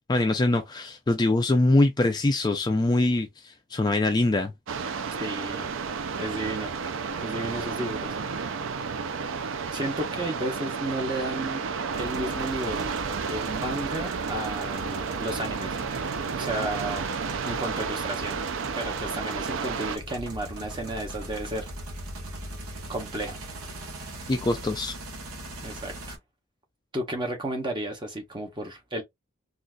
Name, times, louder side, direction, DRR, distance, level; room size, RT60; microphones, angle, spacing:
voice 1, 0.1-4.5 24.3-24.9, left 2 dB, 20° left, 0.3 m, -23 dB
sound 1, 4.7-20.0, right 5 dB, 60° right, 0.4 m, -32 dB
voice 2, 5.2-5.7 6.2-6.7 7.2-8.2 9.7-11.7 11.9-12.9 13.3-15.8 16.4-17.0 17.4-18.4 18.7-21.7 22.9-23.4 25.6-26.2 26.9-29.0, right 1 dB, 20° right, 0.8 m, -33 dB
sound 2, 11.9-26.2, right 1 dB, 85° right, 0.9 m, -40 dB
3.8 x 2.4 x 2.2 m
head